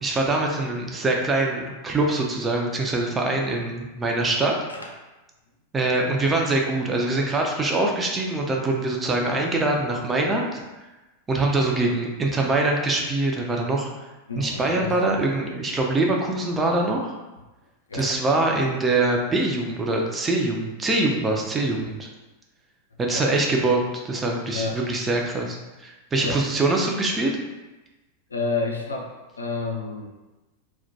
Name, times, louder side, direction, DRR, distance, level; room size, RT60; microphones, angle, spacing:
voice 1, 0.0-4.5 5.7-10.6 11.3-13.9 14.4-17.2 17.9-22.1 23.0-23.8 24.0-27.3, right 2 dB, 15° right, 0 dB, 0.4 m, -24 dB
voice 2, 14.3-15.0 17.9-18.1 23.1-23.4 24.5-24.8 26.2-26.4 28.3-29.1 29.4-30.1, left 3 dB, 75° left, 0 dB, 0.4 m, -29 dB
2.1 x 2.1 x 2.7 m, 1.1 s
figure-of-eight pair, 90°, 0 cm